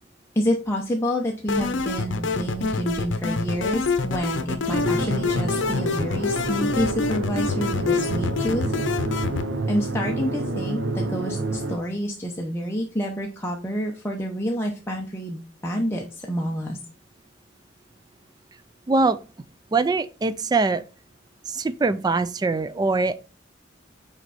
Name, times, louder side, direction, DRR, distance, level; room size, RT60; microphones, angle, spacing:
voice 1, 0.4-8.7 9.7-16.8, equal, 15° left, 0.7 m, -28 dB
sound 1, 1.5-9.5, left 4 dB, 80° left, 0.7 m, -26 dB
sound 2, 4.7-11.8, right 2 dB, 80° right, 0.8 m, -28 dB
voice 2, 18.9-19.2 19.7-20.8 21.5-23.3, right 3 dB, 20° right, 0.3 m, -23 dB
5.9 x 4.4 x 4.1 m
head